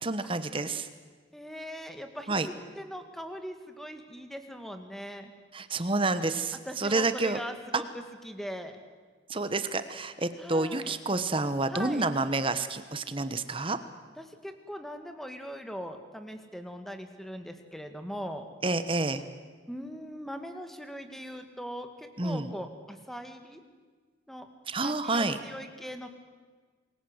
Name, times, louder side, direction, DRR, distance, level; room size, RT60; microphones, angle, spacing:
voice 1, 0.0-0.9 2.3-2.5 5.5-7.4 9.3-13.8 18.6-19.2 22.2-22.5 24.7-25.4, right 2 dB, 25° right, 11 dB, 1.1 m, -29 dB
voice 2, 1.3-5.3 6.7-8.8 10.4-10.9 11.7-12.1 14.2-18.5 19.7-23.6 24.3-24.5 24.8-26.1, equal, ahead, 6 dB, 2.0 m, -40 dB
27.5 x 21.5 x 8.0 m, 1.5 s
head